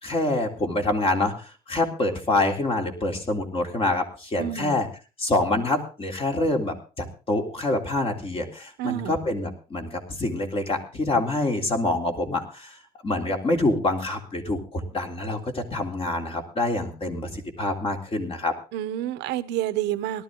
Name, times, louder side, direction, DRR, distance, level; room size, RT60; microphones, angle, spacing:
voice 1, 0.0-4.9 5.2-18.5, left 2 dB, 35° left, 3 dB, 3.5 m, -26 dB
voice 2, 4.4-4.8 8.8-9.2 18.7-20.2, right 12 dB, 90° right, 13 dB, 1.1 m, -29 dB
18.5 x 12.5 x 3.8 m, 0.33 s
cardioid pair, 110°, 17 cm